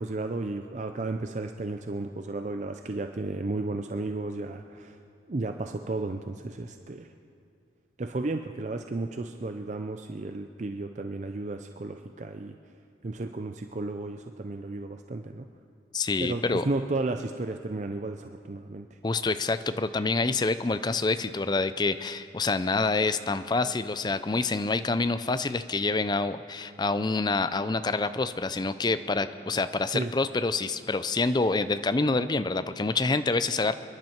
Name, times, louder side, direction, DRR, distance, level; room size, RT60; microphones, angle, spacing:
voice 1, 0.0-5.0 5.3-7.1 8.0-12.6 13.0-15.5 16.2-18.9 29.9-30.1, right 2 dB, 40° right, 6 dB, 0.5 m, -33 dB
voice 2, 15.9-16.6 19.0-33.7, left 3 dB, 25° left, 12 dB, 0.4 m, -27 dB
28.0 x 10.5 x 4.5 m, 2.6 s
head